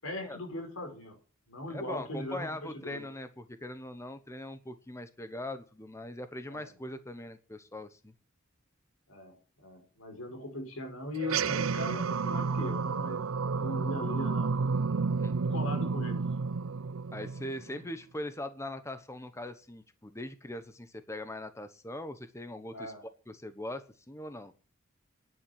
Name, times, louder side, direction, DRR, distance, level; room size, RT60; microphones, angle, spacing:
voice 1, 0.0-1.2 1.5-3.0 6.5-6.7 9.1-9.3 9.6-13.2 13.6-14.5 15.3-16.2 22.7-23.0, left 1 dB, 85° left, 5 dB, 5.4 m, -39 dB
voice 2, 1.7-8.1 15.2-15.3 17.1-22.9 23.3-24.5, left 1 dB, 15° left, 10 dB, 1.0 m, -41 dB
sound 1, 11.2-17.9, right 4 dB, 80° right, 0.6 m, -31 dB
11.0 x 8.9 x 8.2 m, 0.37 s
head